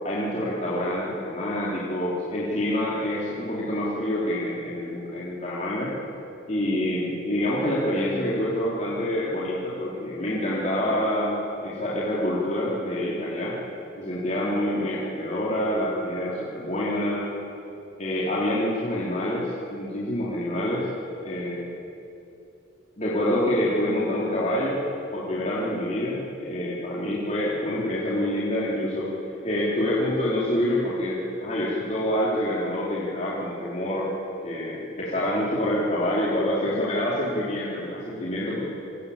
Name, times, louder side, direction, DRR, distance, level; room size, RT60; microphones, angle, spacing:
voice 1, 0.0-5.9 6.5-13.6 14.0-17.3 18.0-20.9 21.2-21.7 23.0-24.8 25.1-34.1 34.4-38.7, left 1 dB, 35° left, -7 dB, 4.0 m, -27 dB
28.5 x 22.5 x 8.8 m, 2.9 s
head